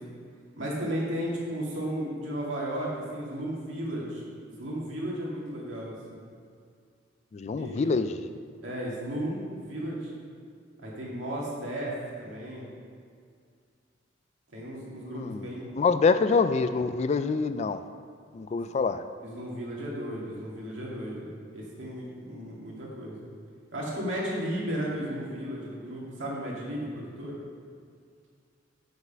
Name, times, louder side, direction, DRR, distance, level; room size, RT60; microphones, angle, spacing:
voice 1, 0.6-6.2 7.5-7.9 8.6-10.1 10.8-11.9 12.2-12.7 14.5-15.8 18.6-18.7 19.2-21.3 21.5-23.2 23.7-27.4, equal, 75° right, -5 dB, 2.3 m, -34 dB
voice 2, 7.3-8.2 15.0-15.5 15.7-17.8 18.3-19.0, left 4 dB, 35° left, 11 dB, 0.3 m, -26 dB
7.3 x 6.5 x 5.7 m, 2.2 s
head